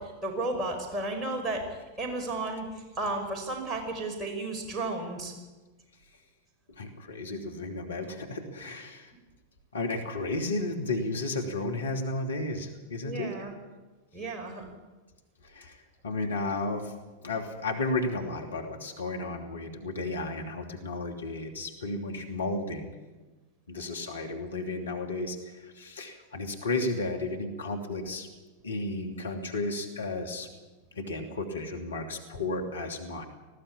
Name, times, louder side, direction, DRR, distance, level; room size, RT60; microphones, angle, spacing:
voice 1, 0.0-5.3 13.0-13.5 14.1-14.7, right 2 dB, 20° right, 2 dB, 5.6 m, -33 dB
voice 2, 6.7-9.1 9.7-13.3 15.4-16.9 17.2-22.9 23.7-28.3 28.6-30.5 30.9-33.2, left 2 dB, 70° left, 3 dB, 2.7 m, -33 dB
19.5 x 16.0 x 8.7 m, 1.2 s
figure-of-eight pair, 90°, 0 cm